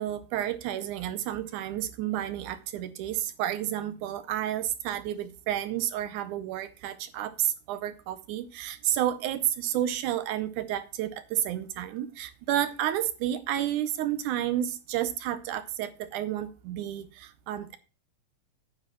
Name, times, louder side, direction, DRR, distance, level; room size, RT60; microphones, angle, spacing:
voice 1, 0.0-17.8, right 11 dB, 80° right, 2.1 m, -31 dB
9.6 x 5.1 x 7.1 m
omnidirectional pair, 3.7 m